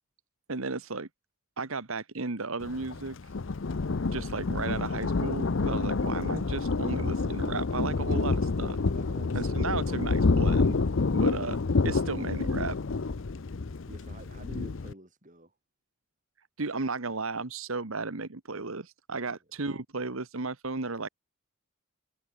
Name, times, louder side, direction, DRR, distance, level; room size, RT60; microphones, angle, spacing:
voice 1, 0.5-1.1 1.6-3.2 4.1-8.8 9.3-10.8 11.1-11.6 11.8-12.8 16.6-21.1, right 3 dB, 70° right, 1.3 m, -34 dB
Thunder, 2.6-14.9, left 3 dB, 60° left, 0.6 m, -28 dB
voice 2, 8.9-9.8 13.9-15.6, right 1 dB, 35° right, 5.2 m, -49 dB
head